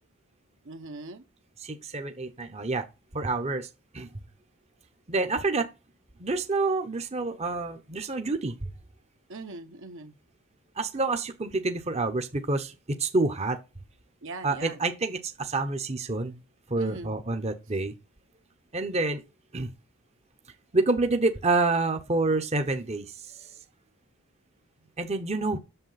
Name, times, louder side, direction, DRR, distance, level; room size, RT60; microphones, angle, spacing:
voice 1, 0.6-1.2 9.3-10.2 14.2-14.8 16.8-17.1, right 3 dB, 60° right, 1.1 m, -40 dB
voice 2, 1.6-2.9 3.1-3.7 3.9-4.1 5.1-5.7 6.2-8.5 10.8-13.6 14.4-16.4 16.7-17.9 18.7-19.2 19.5-19.7 20.7-23.6 25.0-25.6, right 3 dB, 30° right, 0.9 m, -28 dB
7.9 x 6.9 x 5.7 m
head